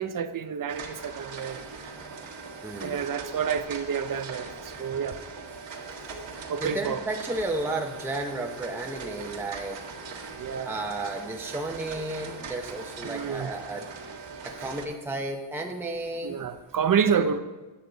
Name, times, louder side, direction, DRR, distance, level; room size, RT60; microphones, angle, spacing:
voice 1, 0.0-1.6 2.8-5.2 6.5-7.0 10.4-10.7 13.0-13.5 16.2-17.4, right 7 dB, 45° right, 11 dB, 0.6 m, -28 dB
sound 1, 0.7-14.8, right 4 dB, 65° right, 1.7 m, -41 dB
voice 2, 2.6-3.1 5.5-5.6 6.6-10.3 10.6-13.9 14.4-16.4 17.1-17.3, right 2 dB, 5° right, 1 dB, 0.7 m, -33 dB
9.9 x 6.5 x 3.9 m, 1.2 s
cardioid pair, 105°, 48 cm